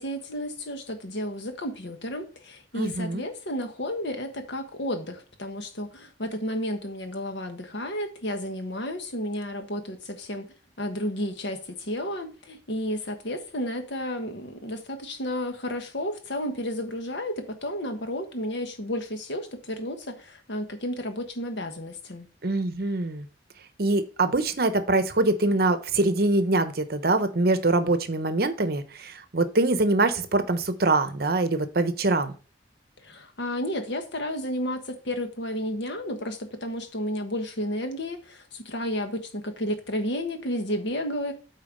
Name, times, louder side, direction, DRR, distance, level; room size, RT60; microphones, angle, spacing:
voice 1, 0.0-22.3 33.0-41.3, equal, 80° left, 1.4 m, -32 dB
voice 2, 2.8-3.2 22.4-23.3 23.8-32.3, right 2 dB, 60° right, 0.9 m, -24 dB
8.5 x 4.4 x 5.2 m
head